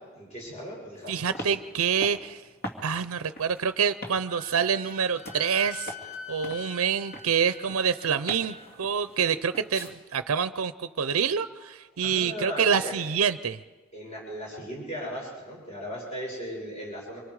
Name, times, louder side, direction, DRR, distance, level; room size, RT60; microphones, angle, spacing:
voice 1, 0.1-1.5 12.0-12.9 13.9-17.2, equal, 30° left, -4 dB, 6.2 m, -37 dB
sound 1, 1.0-9.9, equal, 45° left, 2.4 m, -43 dB
voice 2, 1.1-2.4 2.8-5.9 6.3-13.6, right 7 dB, 75° right, 12 dB, 0.6 m, -27 dB
Wind instrument woodwind instrument, 4.2-8.7, left 5 dB, 85° left, 2.1 m, -44 dB
26.0 x 24.5 x 4.8 m, 1.4 s
head